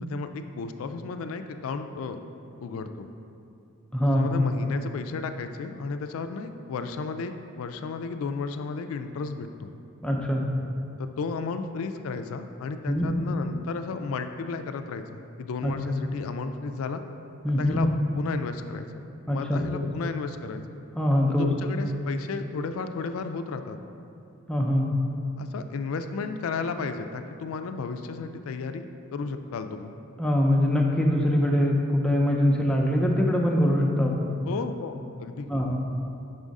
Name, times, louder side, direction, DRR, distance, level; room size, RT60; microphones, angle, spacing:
voice 1, 0.0-2.2 2.6-3.1 4.1-9.7 11.0-15.0 15.4-17.0 17.6-17.9 18.2-18.9 19.3-20.6 21.3-23.8 25.4-28.9 29.1-29.9 34.5-34.9 35.2-35.5, left 4 dB, 75° left, 8 dB, 0.3 m, -33 dB
voice 2, 3.9-4.2 10.0-10.4 12.9-13.1 15.6-15.7 17.4-17.8 19.3-19.8 21.0-21.5 24.5-24.9 30.2-34.3 35.5-35.8, left 1 dB, 5° left, -1 dB, 0.5 m, -23 dB
5.5 x 3.6 x 5.2 m, 2.6 s
head